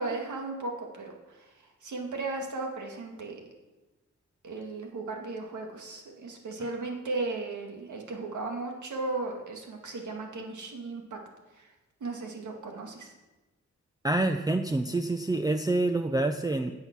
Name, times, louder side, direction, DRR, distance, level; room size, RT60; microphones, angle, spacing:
voice 1, 0.0-3.4 4.4-11.2 11.5-11.7 12.0-13.1, right 3 dB, 85° right, 2 dB, 2.0 m, -36 dB
voice 2, 14.0-16.7, right 2 dB, 15° right, 7 dB, 0.5 m, -27 dB
16.0 x 5.7 x 5.9 m, 1.1 s
wide cardioid pair, 90°, 29 cm